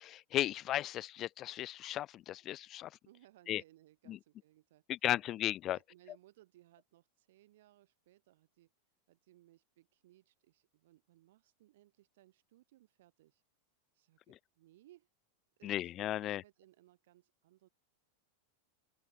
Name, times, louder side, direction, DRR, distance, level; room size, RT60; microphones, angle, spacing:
voice 1, 0.0-2.9 3.5-3.6 4.1-4.2 4.9-5.8 15.6-16.4, left 13 dB, 40° left, 0.4 m, -35 dB
voice 2, 3.1-5.1 5.7-8.7 9.1-13.4 13.9-15.1 15.6-17.7, right 15 dB, 65° right, 7.1 m, -65 dB
open air
hypercardioid pair, 90°, 0 cm